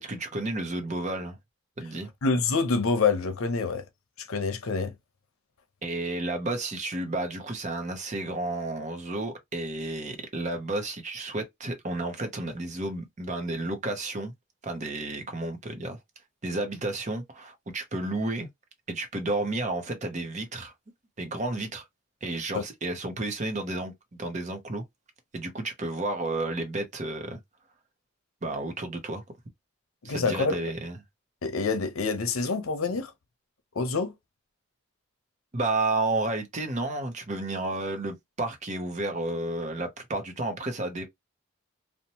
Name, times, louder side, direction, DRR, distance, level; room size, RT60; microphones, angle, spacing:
voice 1, 0.0-1.4 1.8-2.1 5.8-14.3 14.6-16.0 16.4-18.5 18.9-20.7 21.2-21.9 22.2-23.9 24.2-24.8 25.3-27.4 28.4-29.2 30.0-31.0 35.5-41.1, right 2 dB, 35° right, 0.6 m, -31 dB
voice 2, 2.2-3.8 4.2-4.9 22.5-22.6 30.0-30.6 31.4-33.1 33.7-34.1, left 4 dB, 85° left, 0.7 m, -26 dB
2.8 x 2.1 x 2.8 m
head